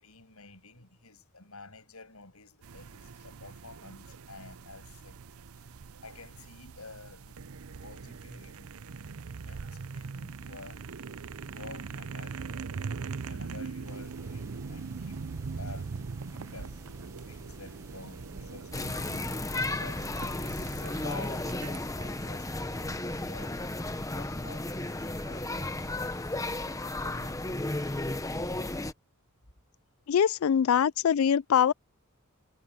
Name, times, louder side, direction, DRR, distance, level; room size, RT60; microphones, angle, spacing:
voice 1, 0.0-5.2 6.0-7.4 7.8-8.7 9.1-10.8 11.5-12.7 13.2-15.3 15.5-16.7 17.0-19.1 19.6-26.4 27.0-27.6, left 3 dB, 90° left, 7.9 m, -50 dB
sound 1, 2.6-21.8, right 5 dB, 80° right, 0.6 m, -41 dB
sound 2, 13.8-27.4, right 1 dB, 15° right, 1.3 m, -51 dB
sound 3, 18.7-28.9, left 2 dB, 15° left, 1.0 m, -34 dB
voice 2, 30.1-31.7, left 8 dB, 70° left, 0.3 m, -23 dB
head